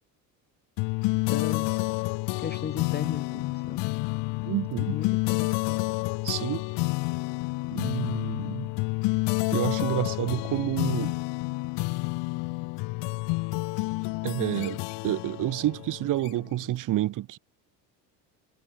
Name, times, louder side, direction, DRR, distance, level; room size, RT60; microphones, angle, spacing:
sound 1, 0.8-16.6, left 24 dB, 60° left, 0.7 m, -29 dB
voice 1, 1.3-2.1 2.4-3.9 4.9-5.8, left 7 dB, 20° left, 0.8 m, -36 dB
voice 2, 4.5-5.0 6.2-6.6 7.7-8.7 9.5-11.1 14.2-17.4, right 14 dB, 40° right, 0.7 m, -29 dB
hypercardioid pair, 70°, 49 cm